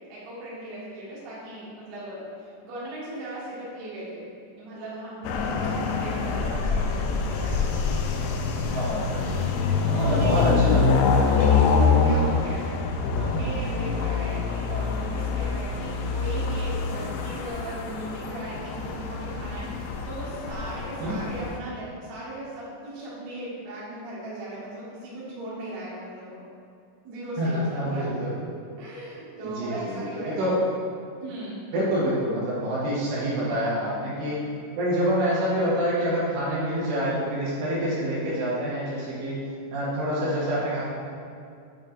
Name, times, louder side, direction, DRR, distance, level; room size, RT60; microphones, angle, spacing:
voice 1, 0.1-7.7 9.8-10.7 11.1-26.4 27.0-28.2 28.8-30.4 31.2-31.6, right 1 dB, 55° right, -9 dB, 2.2 m, -37 dB
sound 1, 5.2-21.6, left 4 dB, 85° left, 2.5 m, -25 dB
voice 2, 8.7-9.5 10.1-11.0 11.4-11.5 21.0-21.2 27.4-28.4 29.4-30.6 31.7-34.4 34.8-39.4 39.7-40.8, equal, 70° right, -8 dB, 3.4 m, -26 dB
8.8 x 5.2 x 2.5 m, 2.4 s
omnidirectional pair, 5.3 m